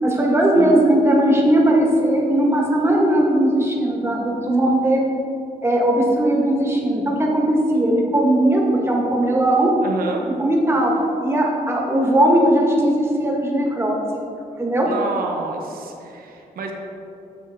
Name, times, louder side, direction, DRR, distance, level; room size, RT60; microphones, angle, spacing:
voice 1, 0.0-5.0 5.6-9.7 10.4-14.0 14.6-14.9, right 1 dB, 15° right, -2 dB, 1.6 m, -18 dB
voice 2, 9.8-10.2 14.8-16.7, right 4 dB, 85° right, 1 dB, 1.0 m, -28 dB
8.8 x 6.7 x 3.6 m, 2.8 s
cardioid pair, 95°, 15 cm